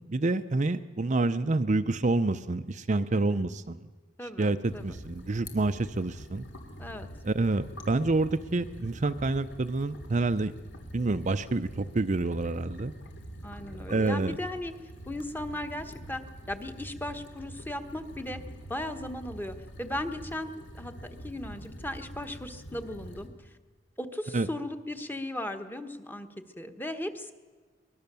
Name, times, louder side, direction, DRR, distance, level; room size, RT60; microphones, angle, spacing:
voice 1, 0.0-3.9 4.4-6.4 7.2-10.5 10.9-12.9 13.9-14.4 24.3-24.5, right 2 dB, 40° right, 10 dB, 0.6 m, -28 dB
voice 2, 3.1-3.5 4.2-4.5 4.7-5.0 6.8-7.1 13.4-14.7 15.1-18.4 18.7-20.9 21.2-23.5 24.0-27.3, left 1 dB, 10° left, 7 dB, 1.3 m, -37 dB
sound 1, 4.6-23.3, equal, 65° left, 3.2 m, -45 dB
23.5 x 20.5 x 6.9 m, 1.4 s
head